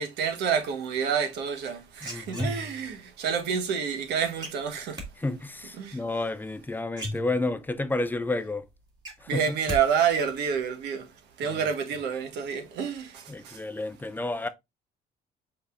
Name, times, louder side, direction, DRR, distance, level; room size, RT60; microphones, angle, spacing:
voice 1, 0.0-5.0 5.8-6.0 9.3-13.7, right 7 dB, 80° right, 1.2 m, -29 dB
sound 1, 1.6-2.9 4.4-5.1 6.5-6.6 6.9-7.7 8.2-8.3 8.6-9.8 10.1-10.6, equal, 25° right, 1.9 m, -35 dB
voice 2, 2.0-2.5 5.2-8.6 9.2-9.4 11.4-11.6 13.3-14.5, left 2 dB, 10° left, 0.5 m, -31 dB
5.2 x 4.1 x 2.4 m
cardioid pair, 110°, 17 cm